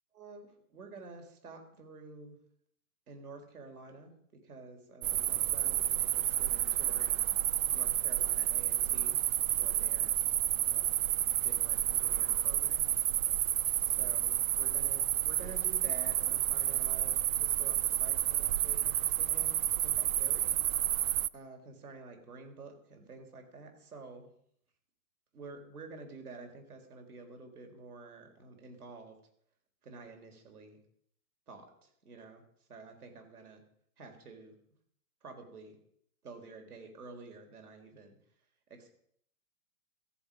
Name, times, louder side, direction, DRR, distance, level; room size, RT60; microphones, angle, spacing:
voice 1, 0.1-2.4 3.1-7.2 7.7-9.2 9.6-10.2 10.7-11.1 11.4-13.0 14.0-21.1 21.3-24.3 25.3-29.2 29.8-30.8 31.5-32.4 32.7-33.6 34.0-34.5 35.2-35.8 36.2-38.2 38.7-38.9, right 3 dB, 80° right, 4 dB, 4.4 m, -50 dB
sound 1, 5.0-21.3, right 12 dB, 65° right, 0.6 m, -30 dB
15.0 x 14.5 x 5.2 m, 0.64 s
hypercardioid pair, 160°, 44 cm